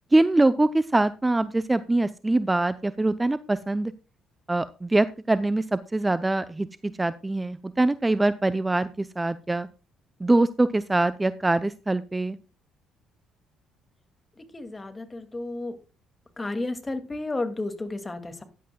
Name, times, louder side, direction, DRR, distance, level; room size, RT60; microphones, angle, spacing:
voice 1, 0.1-3.9 4.5-9.7 10.2-12.4, right 2 dB, 15° right, 14 dB, 0.7 m, -23 dB
voice 2, 14.5-15.8 16.4-18.4, left 2 dB, 20° left, 8 dB, 2.3 m, -32 dB
15.0 x 11.0 x 2.3 m, 0.31 s
hypercardioid pair, 55°, 0 cm